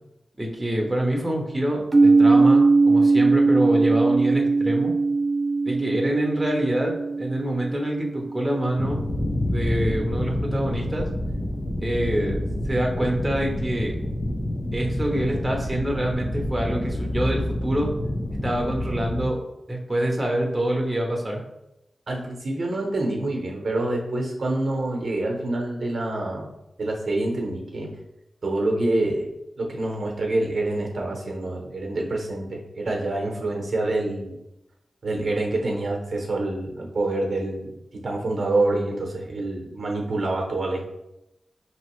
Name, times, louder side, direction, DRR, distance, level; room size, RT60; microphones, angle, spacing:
voice 1, 0.4-4.9 5.6-9.0 9.5-11.1 11.8-12.4 12.6-14.0 14.7-17.9 18.4-19.4 19.7-21.4, right 1 dB, 15° right, 0 dB, 0.8 m, -26 dB
sound 1, 1.9-9.7, right 3 dB, 35° right, 0.4 m, -20 dB
sound 2, 8.8-19.3, left 1 dB, 30° left, 0.6 m, -28 dB
voice 2, 22.1-26.5 26.8-27.9 28.4-29.3 29.6-34.4 35.0-40.9, right 2 dB, 65° right, 0 dB, 0.9 m, -26 dB
5.0 x 3.0 x 3.0 m, 0.88 s
wide cardioid pair, 80°, 0 cm